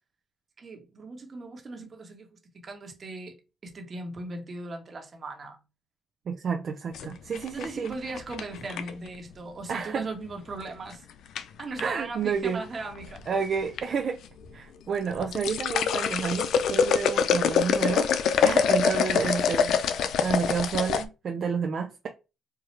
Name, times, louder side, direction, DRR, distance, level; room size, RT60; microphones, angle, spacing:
voice 1, 0.6-3.4 3.6-5.6 7.5-11.1 11.6-13.2 18.7-19.0, right 2 dB, 40° right, 1.2 m, -38 dB
voice 2, 6.3-7.9 9.7-10.1 11.8-12.6 13.3-14.2 14.5-18.1 18.4-19.7 20.2-22.1, right 6 dB, 55° right, 0.6 m, -30 dB
sound 1, 6.9-9.1 10.6-10.9 11.4-11.8 12.7-13.3 13.6-13.8 14.3-14.4 15.0-21.0, left 7 dB, 75° left, 0.4 m, -25 dB
4.7 x 2.4 x 3.1 m
cardioid pair, 90°, 0 cm